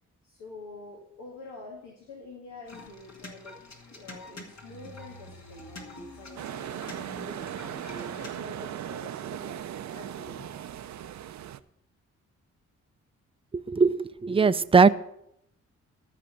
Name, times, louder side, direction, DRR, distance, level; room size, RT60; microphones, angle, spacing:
voice 1, 0.2-3.6 3.9-10.7, left 2 dB, 85° left, -1 dB, 2.1 m, -46 dB
sound 1, 2.7-8.3, left 2 dB, 60° left, 2.4 m, -46 dB
sound 2, 6.4-11.6, right 10 dB, 65° right, 0.6 m, -38 dB
voice 2, 13.5-14.9, right 4 dB, 20° right, 13 dB, 0.5 m, -20 dB
13.0 x 5.0 x 8.5 m, 0.75 s
cardioid pair, 60°, 31 cm